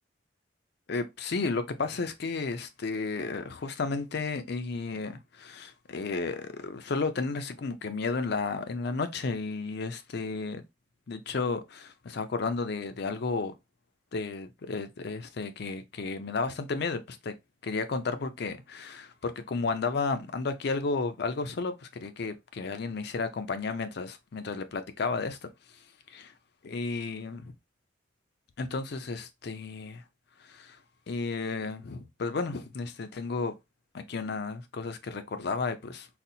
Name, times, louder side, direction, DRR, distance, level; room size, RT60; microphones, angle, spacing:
voice 1, 0.9-10.6 11.1-13.5 14.1-17.3 17.6-25.5 26.1-26.3 26.6-27.5 28.6-30.0 30.4-30.8 31.1-33.5 33.9-36.1, left 4 dB, 60° left, 0.5 m, -33 dB
4.1 x 2.0 x 2.7 m
head